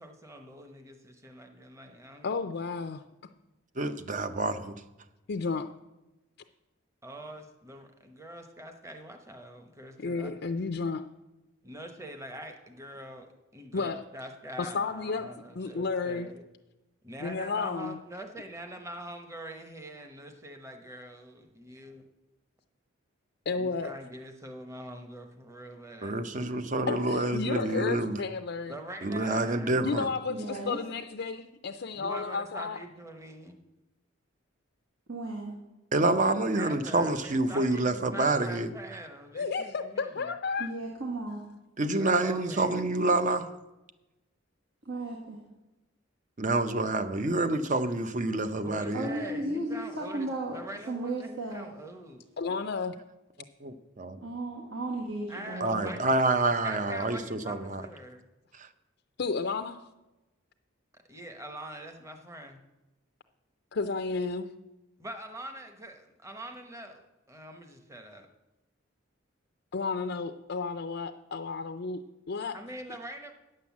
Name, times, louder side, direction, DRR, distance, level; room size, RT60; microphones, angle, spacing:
voice 1, 0.0-2.3 7.0-10.7 11.6-16.4 17.0-22.0 23.6-26.2 26.5-26.6 28.7-29.9 32.0-33.6 36.4-40.3 42.0-42.9 48.6-52.2 55.3-56.3 56.6-58.2 61.1-62.6 65.0-68.3 72.5-73.3, right 1 dB, 15° right, 5 dB, 1.0 m, -44 dB
voice 2, 2.2-3.0 5.3-5.7 10.0-11.1 13.7-14.0 14.6-15.3 15.5-16.3 17.2-18.0 23.5-24.0 26.9-28.8 29.8-32.8 39.3-40.7 52.4-53.0 59.2-59.9 63.7-64.5 69.7-72.6, left 4 dB, 55° left, 7 dB, 0.5 m, -32 dB
voice 3, 3.8-4.8 26.0-28.2 29.0-30.1 35.9-38.7 41.8-43.5 46.4-49.1 53.6-54.2 55.6-57.8 58.6-58.7, right 2 dB, 40° right, 10 dB, 0.7 m, -27 dB
voice 4, 30.3-30.8 35.1-35.6 40.6-41.4 44.8-45.4 48.9-50.6 50.9-51.7 54.2-55.9, right 2 dB, 70° right, -3 dB, 1.8 m, -35 dB
9.4 x 7.7 x 7.2 m, 1.0 s
head